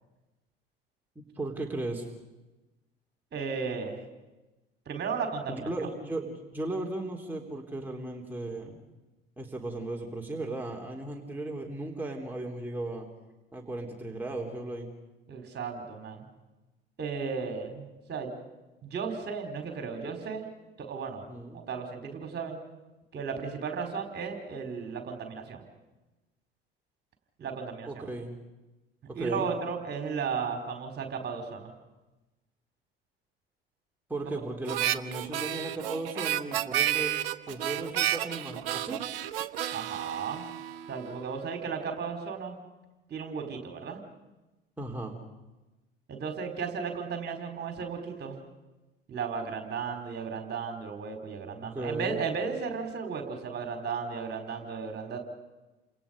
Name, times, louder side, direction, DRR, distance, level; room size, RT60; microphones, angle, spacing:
voice 1, 1.2-2.1 5.5-8.8 9.4-13.1 13.5-14.9 21.3-21.6 27.8-28.3 29.1-29.5 34.1-37.1 37.5-39.0 44.8-45.2 51.6-52.2, right 2 dB, 5° right, 0 dB, 3.4 m, -36 dB
voice 2, 3.3-4.0 4.9-5.9 15.3-16.3 17.0-18.3 18.8-20.5 20.8-21.3 21.7-22.6 23.1-25.6 27.4-28.1 29.1-31.7 34.2-34.3 39.7-40.4 40.9-42.5 43.1-44.0 46.1-48.4 49.1-55.2, right 5 dB, 35° right, 4 dB, 4.5 m, -35 dB
Harmonica, 34.7-41.2, right 12 dB, 65° right, 1.0 m, -31 dB
29.5 x 27.0 x 5.4 m, 1.1 s
figure-of-eight pair, 60°, 30 cm